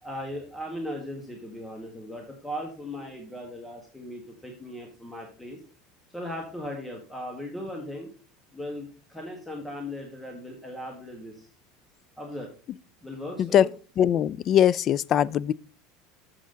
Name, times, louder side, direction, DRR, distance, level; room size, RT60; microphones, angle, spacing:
voice 1, 0.0-5.6 6.1-8.1 8.5-11.5 12.2-12.5 13.0-13.7, left 1 dB, 5° left, 1.8 m, -38 dB
voice 2, 14.0-15.5, left 10 dB, 35° left, 0.3 m, -21 dB
7.4 x 7.4 x 3.9 m
supercardioid pair, 140°, 0 cm